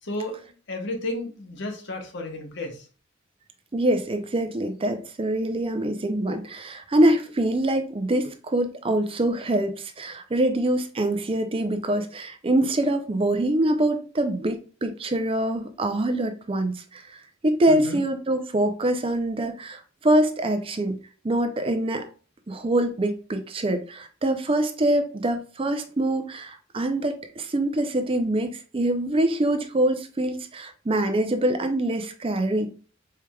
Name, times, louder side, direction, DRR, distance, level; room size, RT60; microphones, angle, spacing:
voice 1, 0.0-2.9 17.7-18.0, left 1 dB, 60° left, 0.9 m, -33 dB
voice 2, 3.7-21.0 21.2-22.1 22.5-32.7, right 1 dB, 30° right, 0.5 m, -24 dB
4.4 x 3.3 x 2.3 m
head